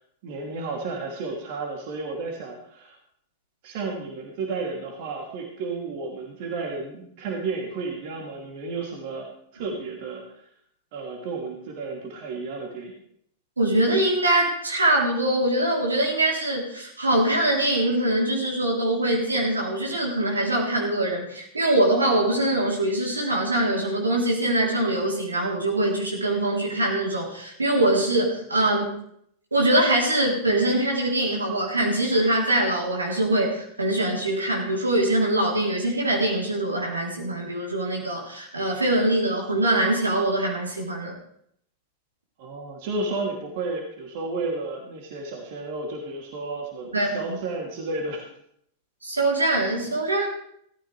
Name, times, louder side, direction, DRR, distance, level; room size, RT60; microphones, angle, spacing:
voice 1, 0.2-3.0 3.6-9.3 9.5-10.4 10.9-12.9 42.4-48.2, right 3 dB, 50° right, 0 dB, 3.0 m, -32 dB
voice 2, 13.6-28.9 29.5-41.1 46.9-47.4 49.0-50.3, right 1 dB, 80° right, -2 dB, 3.6 m, -23 dB
17.0 x 14.0 x 3.4 m, 0.70 s
figure-of-eight pair, 90°, 0 cm